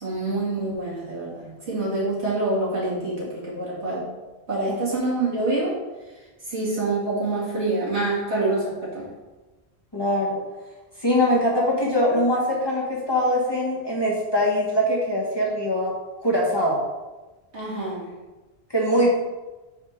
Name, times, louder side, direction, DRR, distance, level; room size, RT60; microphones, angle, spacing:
voice 1, 0.0-4.1 4.5-5.8 6.4-9.1 17.5-18.1, right 2 dB, 80° right, -7 dB, 2.3 m, -26 dB
voice 2, 9.9-10.4 11.0-15.9 16.2-16.8 18.7-19.1, equal, 25° left, -5 dB, 1.2 m, -22 dB
4.9 x 3.5 x 5.6 m, 1.2 s
omnidirectional pair, 1.1 m